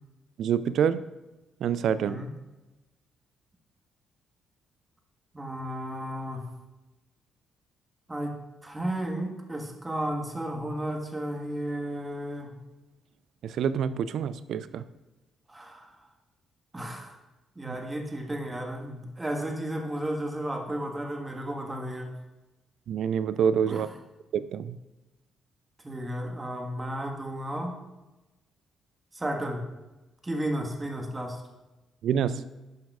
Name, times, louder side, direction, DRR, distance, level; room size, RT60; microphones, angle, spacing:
voice 1, 0.4-1.0 1.6-2.2 13.4-14.8 17.7-17.8 22.9-23.9 24.3-24.8 32.0-32.4, right 8 dB, 70° right, 15 dB, 0.3 m, -27 dB
voice 2, 5.3-6.5 8.1-12.5 15.5-15.9 16.7-17.2 17.5-22.2 23.7-23.9 25.8-27.8 29.1-29.7 30.2-31.4, right 1 dB, 20° right, 3 dB, 1.4 m, -33 dB
10.5 x 5.8 x 2.3 m, 1.1 s
supercardioid pair, 60°, 0 cm